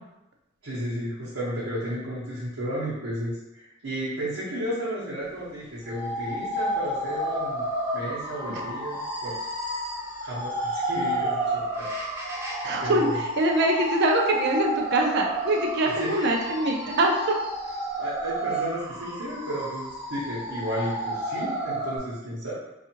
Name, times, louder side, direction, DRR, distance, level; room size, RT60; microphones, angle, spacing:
voice 1, 0.6-9.4 10.2-12.0 12.8-13.2 16.0-16.5 18.0-22.5, equal, 80° right, -10 dB, 0.8 m, -33 dB
sound 1, 5.9-22.0, right 1 dB, 10° right, 0.5 m, -31 dB
voice 2, 12.6-17.1, right 2 dB, 55° right, 2 dB, 0.4 m, -24 dB
2.6 x 2.4 x 2.8 m, 0.93 s
head